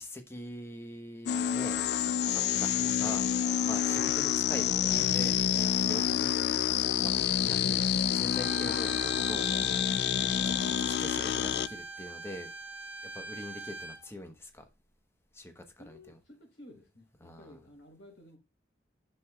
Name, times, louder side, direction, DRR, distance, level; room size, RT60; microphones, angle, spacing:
voice 1, 0.0-1.8 2.3-3.3 3.6-6.3 7.0-7.1 7.5-9.5 10.4-12.5 13.0-14.7 15.3-16.2 17.2-17.6, left 1 dB, 15° left, 1.0 m, -43 dB
sound 1, 1.3-11.7, left 9 dB, 60° left, 0.3 m, -28 dB
Bowed string instrument, 8.3-14.0, right 3 dB, 15° right, 1.3 m, -43 dB
voice 2, 15.8-18.4, left 1 dB, 90° left, 4.0 m, -54 dB
9.2 x 6.4 x 2.3 m
head